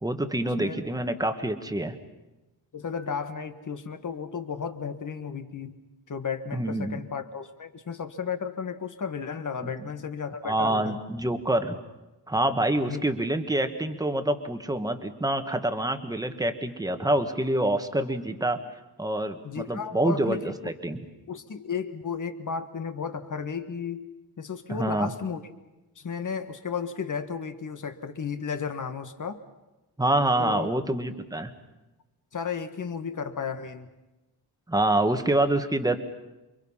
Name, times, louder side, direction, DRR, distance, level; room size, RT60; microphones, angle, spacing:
voice 1, 0.0-1.9 6.5-7.0 9.6-9.7 10.4-11.8 12.3-18.6 19.0-21.0 24.7-25.1 30.0-31.5 34.7-36.0, right 1 dB, 10° right, 7 dB, 1.6 m, -26 dB
voice 2, 2.7-5.8 6.1-11.0 12.8-13.0 19.4-20.7 21.3-24.1 24.4-25.4 25.9-29.4 30.4-30.7 32.3-33.9, left 6 dB, 45° left, 8 dB, 1.7 m, -34 dB
28.5 x 24.0 x 5.7 m, 1.0 s
wide cardioid pair, 140°, 42 cm